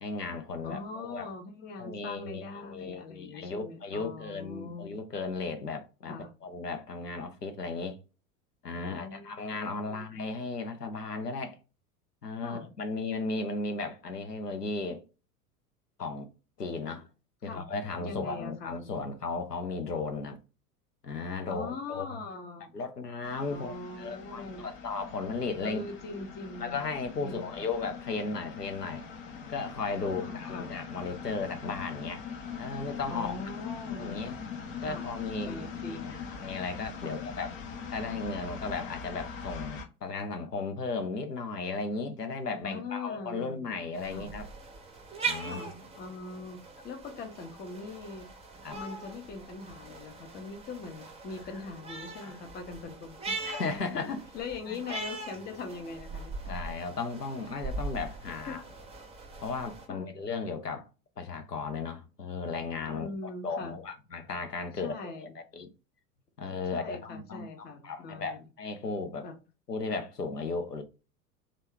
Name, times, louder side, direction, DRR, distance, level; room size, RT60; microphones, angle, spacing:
voice 1, 0.0-1.3 1.8-8.0 8.6-11.6 12.2-15.0 16.0-16.3 16.6-17.1 17.4-20.4 21.0-22.1 22.7-25.9 26.6-29.0 29.5-32.2 32.6-33.3 34.0-34.4 34.8-37.5 37.9-44.5 45.3-45.6 48.6-48.8 52.2-52.4 53.4-54.2 54.7-55.0 56.5-58.6 59.4-60.9 61.2-63.1 63.4-65.7 66.4-69.3 69.7-70.8, left 4 dB, 90° left, 0.7 m, -35 dB
voice 2, 0.6-4.9 6.1-6.3 8.8-9.4 9.8-10.1 12.4-12.7 17.4-17.6 18.0-19.0 21.5-22.8 23.5-24.7 25.6-26.9 27.2-27.5 30.0-30.7 33.1-34.4 34.8-35.1 35.4-36.3 37.0-37.2 42.6-43.6 44.0-44.3 45.4-48.3 48.7-53.9 54.3-56.5 58.5-58.6 59.9-60.1 62.8-63.8 64.8-65.4 66.7-68.5 69.2-69.3, left 3 dB, 20° left, 0.7 m, -42 dB
sound 1, 23.2-39.8, left 6 dB, 55° left, 1.0 m, -42 dB
sound 2, 43.9-59.9, right 3 dB, 15° right, 0.8 m, -41 dB
3.1 x 2.4 x 3.6 m
figure-of-eight pair, 80°, 46 cm